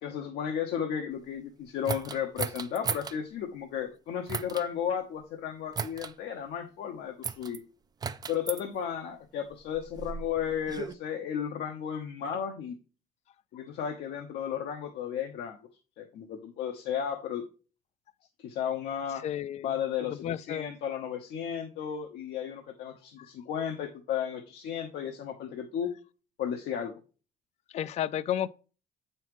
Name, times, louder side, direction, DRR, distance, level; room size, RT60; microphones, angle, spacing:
voice 1, 0.0-7.6 8.3-12.8 13.5-15.6 16.0-17.4 18.4-19.2 19.6-20.2 20.5-25.9 26.4-26.9, left 8 dB, 75° left, 0.9 m, -34 dB
sound 1, 1.9-3.2 4.3-4.7 5.7-6.1 7.2-7.6 8.0-8.6 9.5-10.9, right 6 dB, 25° right, 0.4 m, -35 dB
voice 2, 19.2-19.7 20.0-20.7 23.2-23.3 27.7-28.5, left 10 dB, 40° left, 0.4 m, -32 dB
7.2 x 5.6 x 3.0 m
cardioid pair, 110°, 17 cm